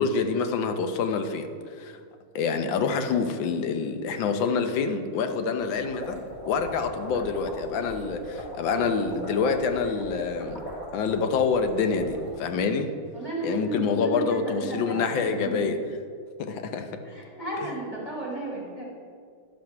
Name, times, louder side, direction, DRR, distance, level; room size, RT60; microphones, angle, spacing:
voice 1, 0.0-1.5 1.8-2.0 2.3-10.6 10.9-12.9 13.4-15.8 16.4-17.0, left 5 dB, 75° left, 7 dB, 1.5 m, -26 dB
sound 1, 5.6-12.4, right 1 dB, 45° left, 3.6 m, -39 dB
voice 2, 13.1-15.7 17.0-18.8, right 2 dB, 20° left, -6 dB, 3.1 m, -34 dB
11.5 x 5.7 x 5.7 m, 2.2 s
omnidirectional pair, 2.1 m